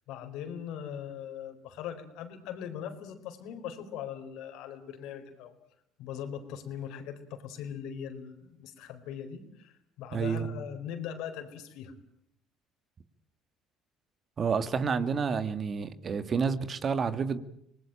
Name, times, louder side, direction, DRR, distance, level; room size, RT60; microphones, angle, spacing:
voice 1, 0.1-5.6 6.0-11.9, left 8 dB, 75° left, 4.3 m, -40 dB
voice 2, 10.1-10.6 14.4-17.4, right 6 dB, 40° right, 1.9 m, -29 dB
26.0 x 20.0 x 8.9 m
supercardioid pair, 80°, 0 cm